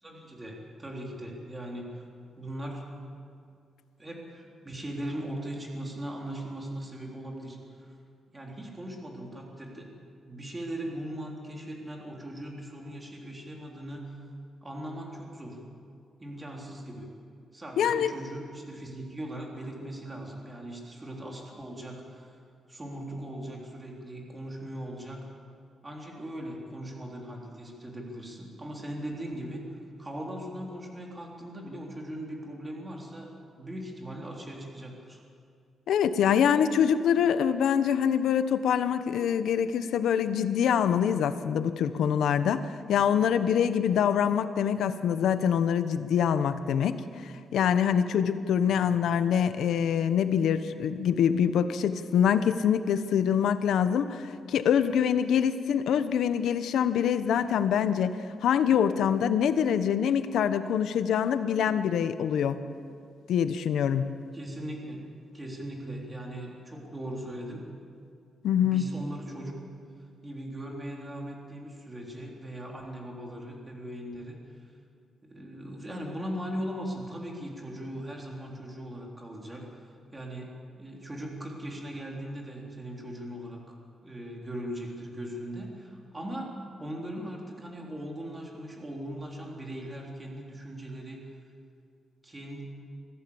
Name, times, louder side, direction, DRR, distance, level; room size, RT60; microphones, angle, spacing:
voice 1, 0.0-2.1 2.4-2.8 4.0-7.9 8.3-9.9 10.3-14.1 14.6-15.6 16.2-17.1 17.5-22.4 22.7-25.2 25.8-29.6 30.0-35.2 48.7-48.9 64.3-65.0 65.3-67.6 68.6-69.6 70.2-74.4 75.2-79.6 80.1-80.5 80.8-83.6 84.0-86.5 86.8-91.2 92.2-92.6, right 1 dB, 15° right, -1 dB, 3.6 m, -39 dB
voice 2, 17.8-18.1 35.9-62.6 63.3-64.1 68.4-68.9, left 8 dB, 85° left, 11 dB, 1.0 m, -25 dB
24.5 x 15.0 x 7.1 m, 2.3 s
cardioid pair, 140°, 0 cm